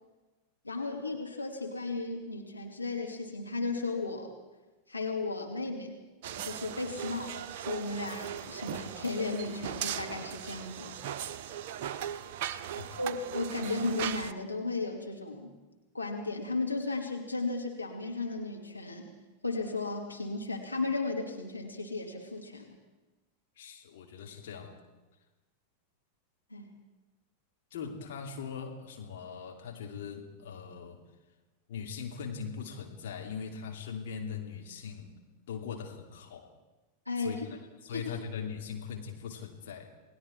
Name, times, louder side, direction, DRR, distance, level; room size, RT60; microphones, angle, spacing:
voice 1, 0.6-4.3 4.9-6.0 6.5-10.9 13.0-15.5 15.9-19.0 19.4-22.8 26.5-26.7 37.1-37.5 37.9-38.1, left 3 dB, 85° left, 0 dB, 2.6 m, -35 dB
sound 1, 6.2-14.3, right 10 dB, 50° right, 0.8 m, -38 dB
voice 2, 23.6-24.7 27.7-31.0 31.7-35.1 35.5-36.5 37.2-39.9, left 6 dB, 55° left, 1 dB, 2.9 m, -40 dB
29.0 x 20.0 x 4.5 m, 1.2 s
figure-of-eight pair, 90°, 0 cm